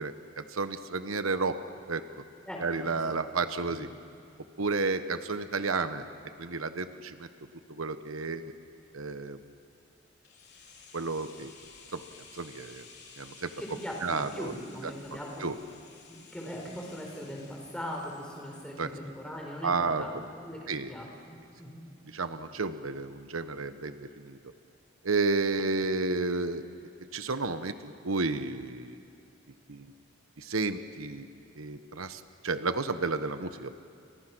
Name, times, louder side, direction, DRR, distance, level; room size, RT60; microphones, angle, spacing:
voice 1, 0.0-1.6 1.9-2.2 2.6-3.9 4.6-6.1 6.4-7.3 7.7-8.5 8.9-9.4 10.9-11.5 11.9-12.0 12.3-12.9 13.2-13.5 14.0-14.5 15.4-15.5 18.8-18.9 19.6-20.1 20.7-20.9 22.1-24.4 25.0-26.6 27.1-29.0 29.7-29.9 30.4-31.3 31.6-33.7, right 3 dB, 90° right, 10 dB, 1.1 m, -31 dB
voice 2, 2.5-3.2 3.6-3.9 13.6-15.4 16.1-21.8, equal, 5° left, -1 dB, 4.7 m, -40 dB
sound 1, 10.2-20.1 20.4-20.5, left 5 dB, 50° left, 4.1 m, -54 dB
29.0 x 28.5 x 6.2 m, 2.4 s
head